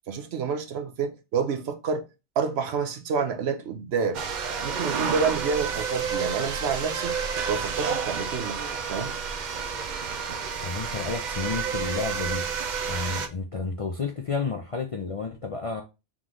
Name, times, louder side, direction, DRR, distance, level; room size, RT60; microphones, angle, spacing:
voice 1, 0.1-2.1 2.4-4.2 4.6-7.2 7.5-8.6 8.9-9.1, right 5 dB, 70° right, 0.9 m, -28 dB
sound 1, 4.1-13.3, right 6 dB, 55° right, 0.6 m, -30 dB
voice 2, 10.6-12.4 12.9-15.8, left 4 dB, 45° left, 0.4 m, -31 dB
3.7 x 3.1 x 3.7 m
omnidirectional pair, 1.2 m